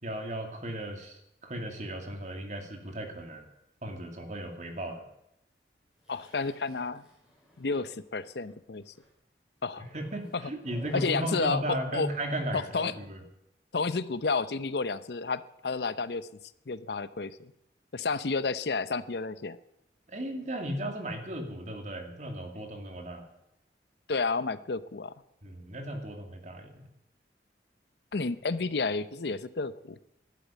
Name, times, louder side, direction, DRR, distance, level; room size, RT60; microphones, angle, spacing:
voice 1, 0.0-3.5 3.8-5.0 9.9-13.2 20.1-23.3 25.4-26.9, right 1 dB, 45° right, 4 dB, 2.4 m, -36 dB
Zipper (clothing), 6.0-8.5 8.8-9.1 9.7-11.3, equal, 5° right, 7.1 m, -54 dB
voice 2, 6.1-7.0 7.6-8.8 9.6-9.8 10.3-10.4 10.9-12.1 12.5-12.9 13.7-16.3 16.7-17.5 17.9-19.6 24.1-25.1 28.1-30.0, left 4 dB, 70° left, 15 dB, 0.7 m, -31 dB
12.0 x 11.5 x 9.1 m, 0.82 s
head